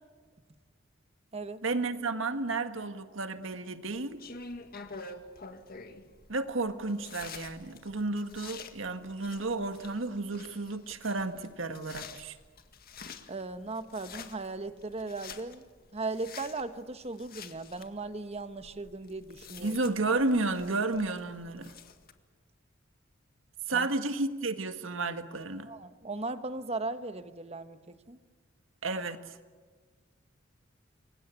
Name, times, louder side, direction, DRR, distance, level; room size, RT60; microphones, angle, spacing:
voice 1, 1.6-4.2 6.3-12.4 19.6-21.7 23.7-25.7 28.8-29.4, right 3 dB, 75° right, 8 dB, 1.8 m, -32 dB
sound 1, 3.9-22.1, left 4 dB, 50° left, 1.9 m, -48 dB
voice 2, 13.3-15.6 15.9-19.7 23.7-23.9 25.6-28.2, right 3 dB, 30° right, 10 dB, 1.3 m, -37 dB
29.0 x 24.5 x 8.3 m, 1.4 s
head